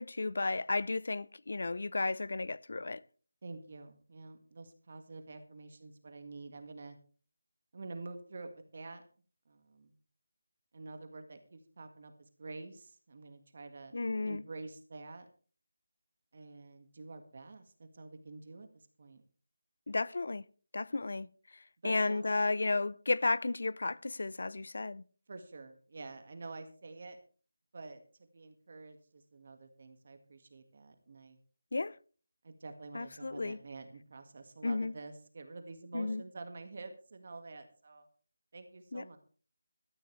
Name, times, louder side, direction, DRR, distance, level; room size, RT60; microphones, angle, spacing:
voice 1, 0.0-3.0 13.9-14.4 19.9-20.4 20.7-25.0 31.7-32.0 32.9-33.6 34.6-34.9 35.9-36.2 38.9-39.0, left 3 dB, 60° left, 0.6 m, -33 dB
voice 2, 3.4-7.0 7.7-9.0 9.5-9.9 10.7-15.2 16.3-19.2 21.8-22.3 25.3-27.2 27.7-28.0 28.3-31.4 32.4-38.1 38.5-39.2, right 3 dB, 45° right, 1.8 m, -48 dB
16.0 x 13.5 x 3.3 m
figure-of-eight pair, 170°, 0 cm